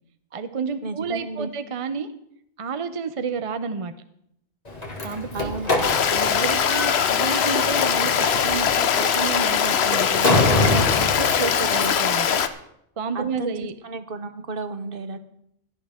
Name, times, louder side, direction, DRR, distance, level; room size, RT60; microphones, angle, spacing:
voice 1, 0.3-2.1 2.6-3.9 5.0-5.5 6.1-12.4 13.0-13.7, right 5 dB, 35° right, 10 dB, 0.6 m, -30 dB
voice 2, 0.8-1.5 5.3-5.7 13.1-15.2, right 3 dB, 55° right, 10 dB, 1.1 m, -33 dB
Slam, 4.6-12.1, left 2 dB, 35° left, 2.0 m, -26 dB
Stream, 5.8-12.5, left 8 dB, 70° left, 1.0 m, -21 dB
17.0 x 12.0 x 3.6 m, 0.74 s
omnidirectional pair, 1.1 m